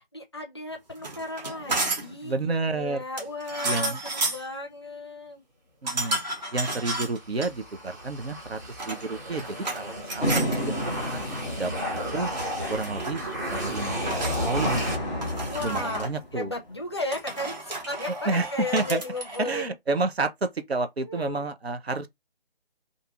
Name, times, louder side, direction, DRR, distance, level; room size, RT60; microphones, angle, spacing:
voice 1, 0.1-5.4 11.4-11.8 15.5-19.7 21.1-21.5, left 2 dB, 25° left, 0.5 m, -35 dB
sound 1, 1.0-2.2 3.2-4.5 5.9-7.5 8.6-9.8 10.1-10.6 11.7-12.1 12.4-13.2 14.1-14.9 15.2-16.1 17.1-19.7, right 2 dB, 45° right, 1.0 m, -32 dB
voice 2, 2.2-3.0 3.6-4.0 5.8-6.2 6.5-11.2 11.6-12.3 12.7-13.2 13.5-15.0 15.6-16.5 18.2-19.0 19.4-22.1, right 3 dB, 90° right, 0.7 m, -30 dB
sound 2, 6.9-16.2, equal, 20° right, 0.5 m, -33 dB
sound 3, 10.2-16.7, equal, 5° left, 0.9 m, -34 dB
2.6 x 2.4 x 2.8 m
figure-of-eight pair, 150°, 30 cm